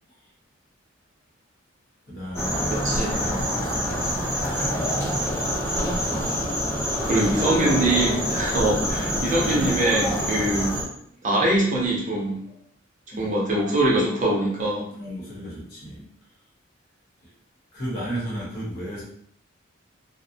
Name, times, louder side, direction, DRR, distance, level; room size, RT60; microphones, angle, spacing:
voice 1, 2.1-5.2 5.6-6.3 6.7-8.0 9.4-9.8 11.2-11.3 13.1-13.3 14.9-16.1 17.2-17.3 17.7-19.0, equal, 50° left, -5 dB, 0.9 m, -35 dB
sound 1, 2.3-10.8, equal, 15° left, 0.6 m, -26 dB
voice 2, 2.7-3.1 7.0-10.7 11.2-12.4 13.2-14.9, right 1 dB, 40° right, -4 dB, 0.6 m, -23 dB
2.5 x 2.1 x 2.6 m, 0.68 s
head